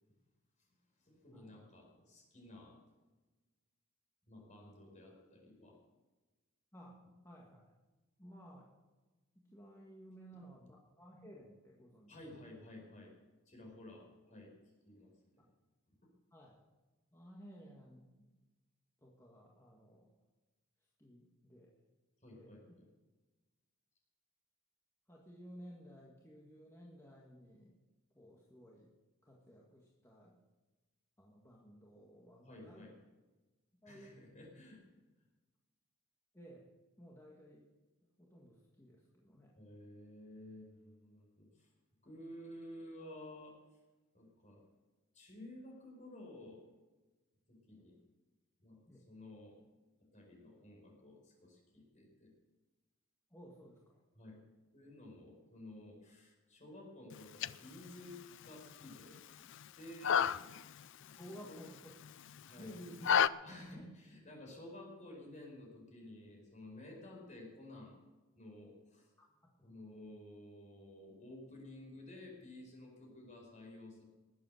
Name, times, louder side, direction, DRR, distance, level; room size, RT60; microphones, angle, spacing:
voice 1, 1.0-2.8 4.3-5.8 12.1-13.1 13.5-14.5 14.8-15.4 22.2-22.8 32.4-32.9 33.8-34.8 39.6-41.7 42.0-43.5 44.1-44.6 45.1-46.6 47.5-48.0 48.6-48.8 49.1-49.6 50.1-52.3 54.2-54.4 54.7-59.2 59.4-60.3 61.0-61.2 61.5-61.6 62.4-62.7 63.4-68.0 68.4-69.1 69.6-74.0, left 1 dB, 35° left, 0 dB, 5.0 m, -53 dB
voice 2, 7.2-7.7 8.2-8.7 9.4-12.2 16.3-16.6 17.1-18.3 19.0-20.1 21.0-21.7 22.3-22.6 25.1-27.7 28.2-28.9 29.2-30.3 31.2-32.8 33.7-34.2 36.3-36.7 37.0-37.7 38.2-39.5 48.9-49.1 53.3-54.0 61.2-61.9 62.5-63.1 63.7-63.9 69.2-69.8, equal, 15° left, -3 dB, 1.9 m, -55 dB
sound 1, 57.1-63.3, left 8 dB, 60° left, 0.4 m, -36 dB
20.0 x 8.6 x 6.6 m, 1.2 s
head